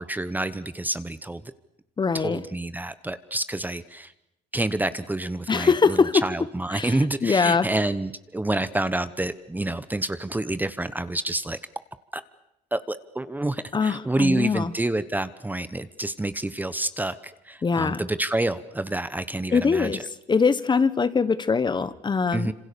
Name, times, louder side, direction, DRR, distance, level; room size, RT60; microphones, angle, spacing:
voice 1, 0.0-1.4 2.1-4.1 4.5-11.6 12.1-12.2 12.7-20.0 22.3-22.5, right 2 dB, 10° right, 13 dB, 1.0 m, -28 dB
voice 2, 2.0-2.4 5.5-6.1 6.7-7.0 7.2-7.7 13.7-14.7 17.6-18.0 19.5-20.0 20.3-22.5, left 5 dB, 25° left, 15 dB, 1.3 m, -22 dB
27.0 x 26.0 x 6.9 m, 0.86 s
cardioid pair, 110°, 17 cm